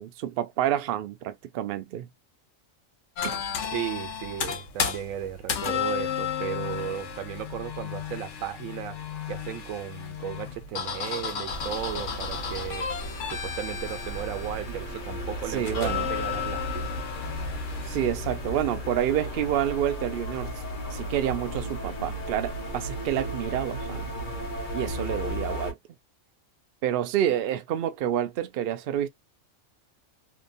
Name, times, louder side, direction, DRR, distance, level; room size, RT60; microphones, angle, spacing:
voice 1, 0.0-2.1 3.2-3.4 15.5-16.1 17.9-20.6 20.9-24.1 24.7-25.8 26.8-29.1, right 11 dB, 65° right, 0.6 m, -28 dB
sound 1, 3.2-18.1, left 7 dB, 65° left, 1.0 m, -33 dB
voice 2, 3.7-9.0 9.3-12.9 13.3-17.0, right 10 dB, 85° right, 1.1 m, -35 dB
sound 2, 11.5-25.7, equal, 45° left, 0.8 m, -35 dB
2.9 x 2.2 x 2.4 m
omnidirectional pair, 1.4 m